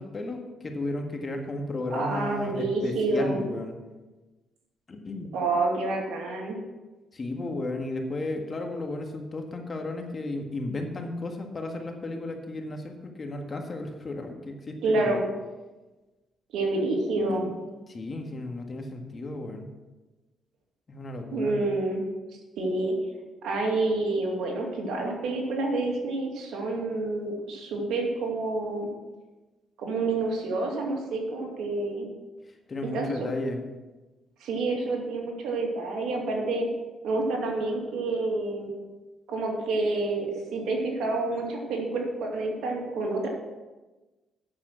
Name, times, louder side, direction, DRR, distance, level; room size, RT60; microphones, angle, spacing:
voice 1, 0.0-3.7 4.9-5.3 7.1-15.2 17.2-17.5 17.9-19.7 20.9-21.6 32.7-33.6, left 2 dB, 35° left, 3 dB, 1.6 m, -34 dB
voice 2, 1.9-3.4 5.3-6.6 14.8-15.2 16.5-17.5 21.3-22.0 22.6-22.9 23.4-28.9 29.8-32.1 32.9-33.3 34.4-36.7 37.0-38.7 39.3-43.3, right 2 dB, 80° right, 0 dB, 2.4 m, -28 dB
8.9 x 7.1 x 6.0 m, 1.2 s
cardioid pair, 90°, 0 cm